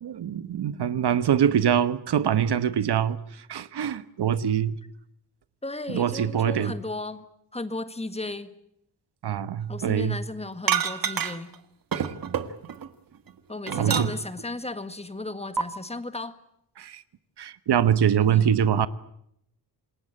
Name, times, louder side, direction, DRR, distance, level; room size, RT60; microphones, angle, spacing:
voice 1, 0.0-3.2 3.5-4.8 5.9-6.7 9.2-10.2 11.9-12.1 13.8-14.1 16.8-17.0 17.4-18.9, right 9 dB, 70° right, 1.3 m, -24 dB
voice 2, 5.6-7.3 7.5-8.5 9.7-11.5 13.5-16.4 18.2-18.5, left 2 dB, 15° left, 1.7 m, -35 dB
sound 1, 10.7-11.6 11.9-12.9 13.3-14.4 15.6-15.7, right 7 dB, 55° right, 1.7 m, -27 dB
27.5 x 20.5 x 8.8 m
wide cardioid pair, 130°, 41 cm